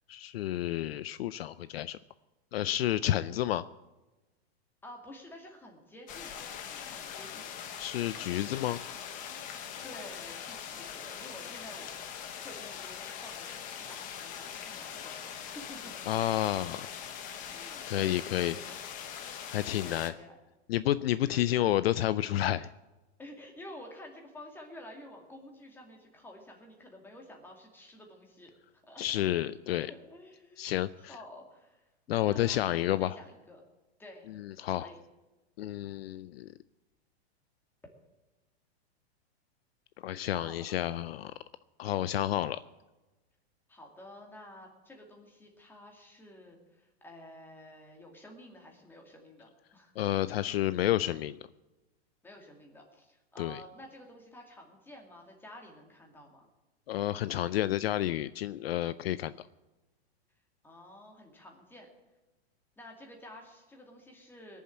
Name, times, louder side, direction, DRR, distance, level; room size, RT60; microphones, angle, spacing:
voice 1, 0.1-2.0 2.5-3.6 7.8-8.8 16.1-16.9 17.9-18.5 19.5-20.1 20.7-22.7 29.0-29.9 30.6-31.1 32.1-33.2 34.4-34.9 35.6-36.5 40.0-41.3 41.8-42.6 50.0-51.4 53.4-53.6 56.9-59.3, left 13 dB, 65° left, 16 dB, 0.5 m, -30 dB
voice 2, 4.8-7.5 9.8-12.0 12.4-15.9 16.9-17.1 17.5-18.8 19.7-20.4 21.0-21.7 23.2-28.5 28.8-29.2 29.8-33.6 34.0-34.3 34.8-35.0 40.3-40.8 43.7-49.9 52.2-56.5 60.6-61.9 62.8-64.6, left 1 dB, 5° left, 1 dB, 2.3 m, -51 dB
sound 1, 6.1-20.1, left 8 dB, 25° left, 1.0 m, -42 dB
19.0 x 7.3 x 8.7 m, 1.1 s
supercardioid pair, 155°, 33 cm